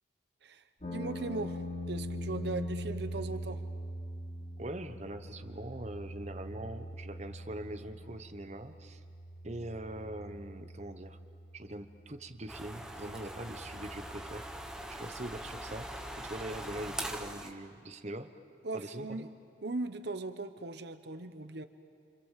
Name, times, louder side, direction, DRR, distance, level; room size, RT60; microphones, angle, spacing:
voice 1, 0.4-3.6 18.6-19.3 19.6-21.6, right 3 dB, 60° right, 10 dB, 0.9 m, -39 dB
sound 1, 0.8-14.8, equal, 35° left, 2.9 m, -43 dB
voice 2, 4.6-9.0 9.4-11.2 11.5-14.5 14.9-18.3 18.7-19.3, right 1 dB, 35° right, 9 dB, 1.1 m, -42 dB
sound 2, 12.5-17.5, right 1 dB, 5° right, 1.2 m, -42 dB
28.5 x 26.5 x 7.5 m, 2.3 s
head